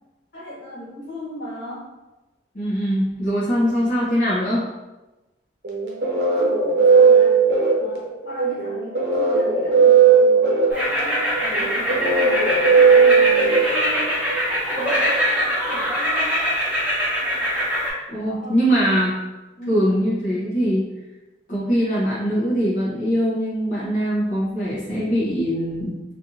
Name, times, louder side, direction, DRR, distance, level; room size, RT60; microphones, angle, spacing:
voice 1, 0.3-1.9 6.1-7.4 7.8-12.6 12.9-14.2 14.7-16.6 18.3-19.1 19.6-19.8, left 1 dB, 75° left, -7 dB, 1.3 m, -37 dB
voice 2, 2.5-4.7 18.1-19.2 19.7-20.9 21.5-26.0, equal, 45° left, -9 dB, 0.9 m, -22 dB
sound 1, 5.6-14.3, right 5 dB, 70° right, 0.7 m, -17 dB
sound 2, 10.7-17.9, equal, 10° right, 0.7 m, -23 dB
3.4 x 2.5 x 2.7 m, 1.1 s
head